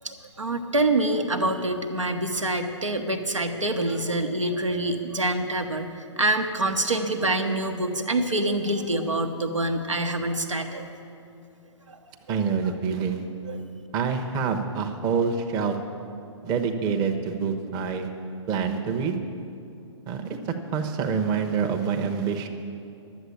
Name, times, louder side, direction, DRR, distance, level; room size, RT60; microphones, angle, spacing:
voice 1, 0.0-10.9 11.9-12.0 12.3-12.6 13.4-13.7, right 2 dB, 90° right, 4 dB, 1.1 m, -26 dB
voice 2, 12.3-13.2 13.9-15.8 16.4-18.1 18.5-19.2 20.1-22.5, right 6 dB, 25° right, 4 dB, 0.8 m, -26 dB
11.5 x 7.8 x 8.4 m, 2.7 s
figure-of-eight pair, 125°, 16 cm